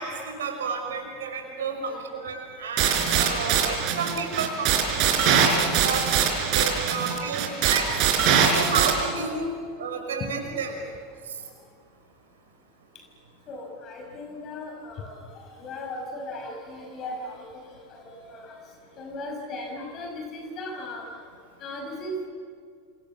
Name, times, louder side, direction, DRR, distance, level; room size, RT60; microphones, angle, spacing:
voice 1, 0.0-5.2 5.7-6.1 6.5-8.1 8.5-9.5 9.8-10.8 11.3-11.4, right 5 dB, 75° right, 4 dB, 5.9 m, -31 dB
sound 1, 2.8-8.9, right 7 dB, 50° right, 5.0 m, -22 dB
voice 2, 13.5-15.1 15.6-17.4 17.9-18.7 19.0-21.1 21.6-22.3, left 1 dB, 40° left, 2 dB, 5.8 m, -37 dB
28.5 x 26.5 x 7.3 m, 2.1 s
hypercardioid pair, 90°, 0 cm